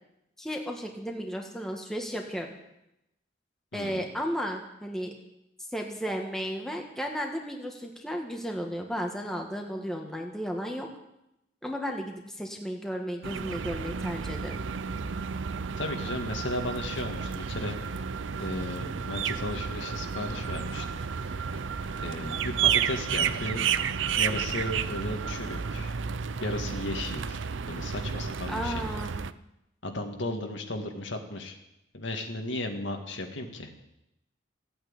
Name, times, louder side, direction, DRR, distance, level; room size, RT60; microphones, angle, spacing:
voice 1, 0.4-2.5 3.7-5.1 5.7-10.9 11.6-14.6 28.5-29.2, equal, 5° left, 1 dB, 1.6 m, -34 dB
voice 2, 3.7-4.1 15.8-17.8 18.4-20.8 22.0-23.6 24.1-25.9 26.4-28.8 29.8-31.5 31.9-33.7, left 1 dB, 75° left, 4 dB, 2.0 m, -35 dB
sound 1, 13.2-29.3, right 7 dB, 80° right, 0.6 m, -31 dB
15.5 x 8.9 x 8.9 m, 0.87 s
head